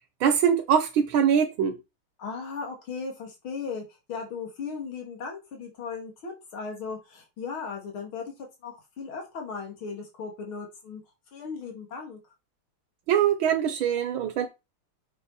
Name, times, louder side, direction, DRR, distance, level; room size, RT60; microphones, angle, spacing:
voice 1, 0.2-1.8 13.1-14.5, right 8 dB, 75° right, 1.7 m, -23 dB
voice 2, 2.2-8.3 8.6-11.0 11.3-12.2, left 5 dB, 75° left, 3.2 m, -37 dB
7.8 x 6.7 x 4.2 m
omnidirectional pair, 2.3 m